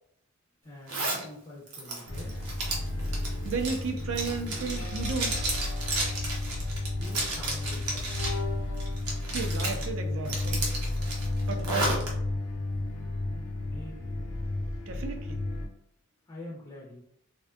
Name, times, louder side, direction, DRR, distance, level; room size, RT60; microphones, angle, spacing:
voice 1, 0.6-2.4 7.0-8.4 13.6-14.1 16.3-17.0, left 1 dB, 15° left, -5 dB, 0.4 m, -45 dB
Zipper (clothing), 0.9-1.2 1.7-8.4 8.8-9.8 10.2-12.1, right 2 dB, 90° right, 0.7 m, -33 dB
sound 1, 2.1-15.7, left 2 dB, 90° left, 0.5 m, -32 dB
voice 2, 3.4-5.5 9.3-10.7 11.4-12.1 14.9-15.4, right 4 dB, 55° right, 4 dB, 0.4 m, -34 dB
2.5 x 2.1 x 2.4 m, 0.73 s
head